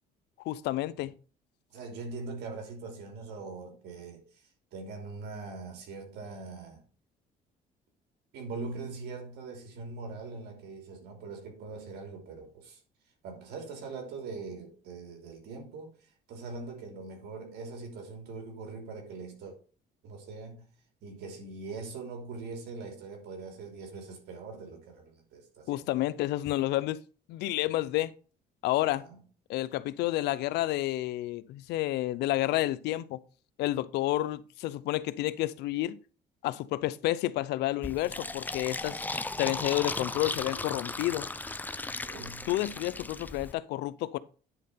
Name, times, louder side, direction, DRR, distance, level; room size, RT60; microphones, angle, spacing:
voice 1, 0.4-1.1 25.7-27.0 27.3-28.1 28.6-29.1 29.5-33.2 33.6-36.0 36.4-39.0 39.4-41.3 42.5-44.2, left 16 dB, 85° left, 0.6 m, -30 dB
voice 2, 1.7-6.8 8.3-12.8 13.2-19.6 20.0-20.7 21.0-25.9 28.8-29.2 42.1-42.5, right 4 dB, 80° right, 3.0 m, -42 dB
Fill (with liquid), 37.8-43.5, left 2 dB, 10° left, 0.5 m, -36 dB
9.9 x 4.2 x 5.5 m
cardioid pair, 110°, 17 cm